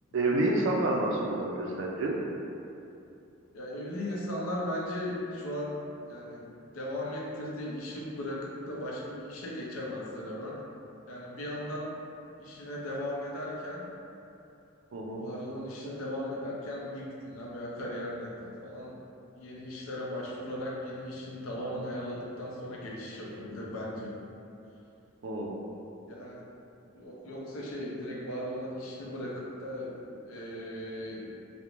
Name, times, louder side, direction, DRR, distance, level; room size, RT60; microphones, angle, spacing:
voice 1, 0.1-2.1 14.9-15.2 25.2-25.6, right 2 dB, 60° right, -1 dB, 0.3 m, -28 dB
voice 2, 3.5-5.8 6.1-6.5 6.7-10.6 11.1-12.0 12.4-13.9 14.9-19.0 19.3-24.2 26.1-26.4 26.9-31.3, left 1 dB, 90° left, -4 dB, 0.5 m, -37 dB
2.4 x 2.0 x 2.9 m, 2.7 s
head